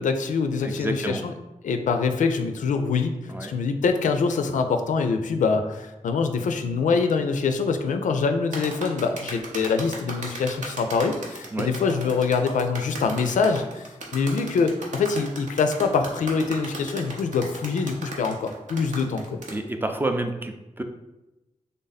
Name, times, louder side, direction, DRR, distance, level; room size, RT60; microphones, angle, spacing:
voice 1, 0.0-1.3 1.6-19.4, left 5 dB, 90° left, 6 dB, 0.4 m, -24 dB
voice 2, 0.6-1.2 3.3-3.5 11.5-11.7 19.5-20.8, right 1 dB, 15° right, 5 dB, 0.4 m, -29 dB
sound 1, 8.5-19.6, right 2 dB, 75° right, 0.8 m, -36 dB
3.4 x 2.7 x 3.9 m, 1.0 s
wide cardioid pair, 90°, 13 cm